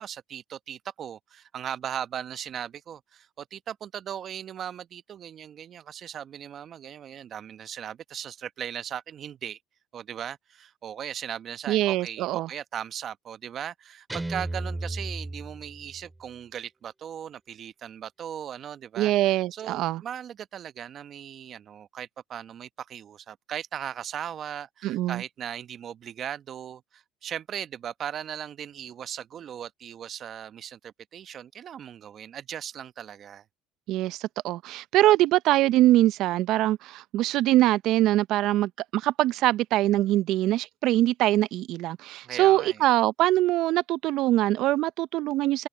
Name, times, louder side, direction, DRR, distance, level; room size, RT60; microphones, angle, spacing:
voice 1, 0.0-9.6 9.9-33.4 42.2-42.8, right 9 dB, 45° right, 1.0 m, -38 dB
voice 2, 11.7-12.5 19.0-20.0 24.8-25.2 33.9-45.7, right 15 dB, 65° right, 0.6 m, -23 dB
Guitar, 14.1-16.1, right 2 dB, 10° right, 2.7 m, -34 dB
hypercardioid pair, 75°, 0 cm